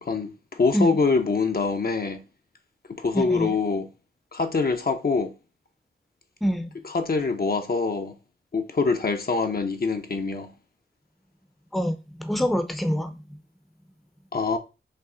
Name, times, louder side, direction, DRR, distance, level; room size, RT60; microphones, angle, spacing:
voice 1, 0.0-2.2 3.0-3.9 4.3-5.3 6.8-8.1 8.5-10.5 14.3-14.6, left 4 dB, 45° left, 0.7 m, -24 dB
voice 2, 3.1-3.5 6.4-6.7 11.7-13.4, equal, ahead, 0.6 m, -26 dB
5.7 x 2.1 x 3.7 m
cardioid pair, 60°, 21 cm